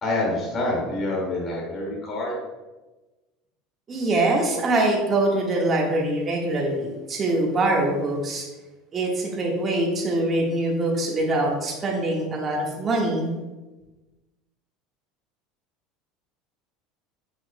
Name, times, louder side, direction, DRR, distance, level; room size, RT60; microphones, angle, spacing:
voice 1, 0.0-2.3, left 2 dB, 30° left, -4 dB, 2.1 m, -27 dB
voice 2, 3.9-8.5 8.9-13.3, right 2 dB, 30° right, -1 dB, 1.5 m, -23 dB
7.7 x 5.8 x 2.2 m, 1.1 s
supercardioid pair, 125°, 0 cm